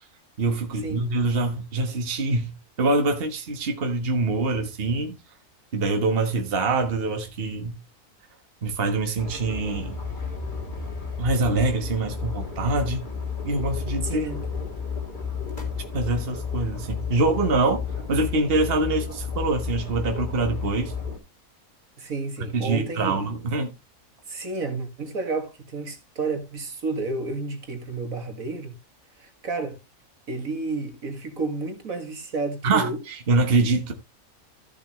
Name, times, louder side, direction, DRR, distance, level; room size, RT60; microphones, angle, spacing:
voice 1, 0.4-2.5 2.8-5.2 5.7-7.8 8.6-10.0 11.2-13.0 13.4-14.3 15.9-17.8 18.1-20.9 22.5-23.7 32.6-33.9, right 3 dB, 40° right, 1.5 m, -24 dB
sound 1, 9.2-21.2, left 5 dB, 30° left, 3.8 m, -32 dB
voice 2, 14.0-14.4 22.0-23.3 24.3-28.7 29.2-29.8 30.3-33.0, right 3 dB, 65° right, 2.4 m, -31 dB
14.5 x 7.3 x 3.1 m
omnidirectional pair, 1.6 m